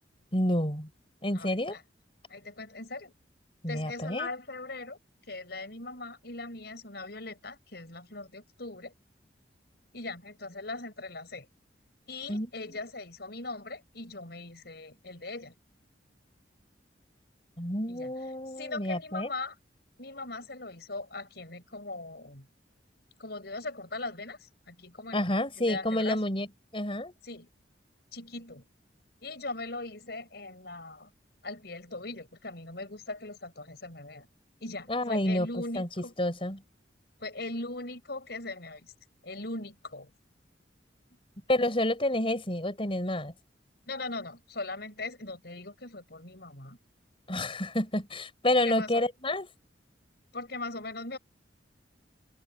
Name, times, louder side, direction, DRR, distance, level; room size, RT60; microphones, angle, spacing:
voice 1, 0.3-0.9 1.2-1.8 3.6-4.3 12.3-12.8 17.6-19.3 25.1-26.5 26.7-27.1 34.9-36.6 41.5-43.3 47.3-49.5, left 1 dB, 30° left, 5.6 m, -29 dB
voice 2, 1.3-1.8 2.3-3.1 3.7-5.0 5.3-8.9 9.9-11.5 12.1-15.5 17.9-18.1 18.6-19.6 20.0-22.5 23.2-25.3 25.6-26.2 27.2-27.5 28.1-28.6 29.2-31.1 31.4-34.3 34.6-36.1 37.2-38.9 39.2-40.1 43.9-46.8 48.6-49.0 50.3-51.2, left 2 dB, 60° left, 6.3 m, -40 dB
open air
head